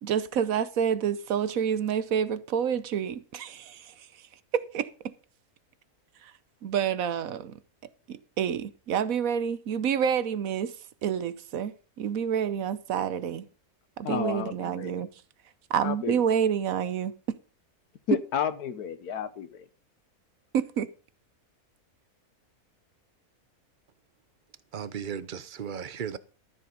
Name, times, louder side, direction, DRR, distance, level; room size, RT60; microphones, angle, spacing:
voice 1, 0.0-4.1 4.5-5.1 6.2-6.3 6.6-7.6 8.1-10.7 11.0-13.5 14.0-15.1 15.7-17.1 20.5-20.9, right 8 dB, 70° right, 1.2 m, -28 dB
voice 2, 14.0-14.9 15.8-16.2 18.1-19.7, left 8 dB, 90° left, 1.6 m, -31 dB
voice 3, 24.7-26.2, right 7 dB, 45° right, 0.7 m, -35 dB
13.5 x 7.4 x 5.3 m
omnidirectional pair, 1.6 m